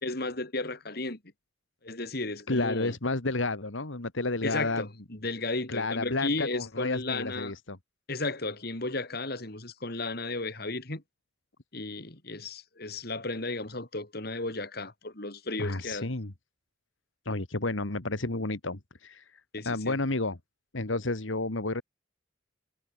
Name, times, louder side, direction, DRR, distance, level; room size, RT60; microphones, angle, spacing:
voice 1, 0.0-1.2 1.8-3.0 4.4-7.5 8.1-11.0 11.7-16.1 19.5-20.0, left 2 dB, 50° left, 3.3 m, -34 dB
voice 2, 2.5-4.9 5.7-7.8 15.6-16.3 17.3-19.2 19.7-20.4 20.7-21.8, left 2 dB, 80° left, 2.0 m, -31 dB
head